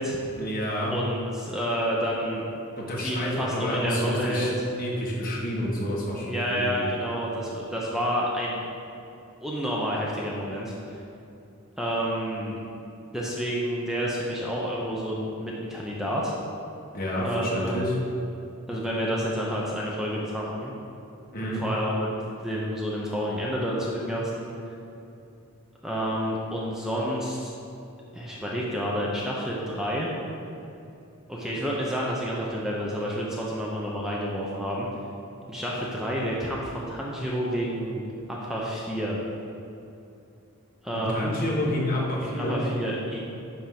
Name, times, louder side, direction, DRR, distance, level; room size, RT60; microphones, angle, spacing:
voice 1, 0.4-0.9 2.8-4.5 4.8-6.7 16.9-17.9 21.3-21.6 40.9-42.6, left 1 dB, 40° left, -4 dB, 1.7 m, -29 dB
voice 2, 0.9-2.5 3.0-4.5 6.2-8.6 9.4-11.0 11.8-12.6 13.1-16.3 17.2-17.7 18.7-20.7 21.4-22.1 22.4-24.5 25.8-27.5 28.1-30.1 31.3-34.9 35.5-39.2 40.8-41.4 42.2-43.2, equal, ahead, -5 dB, 0.8 m, -29 dB
10.5 x 3.6 x 5.9 m, 2.7 s
head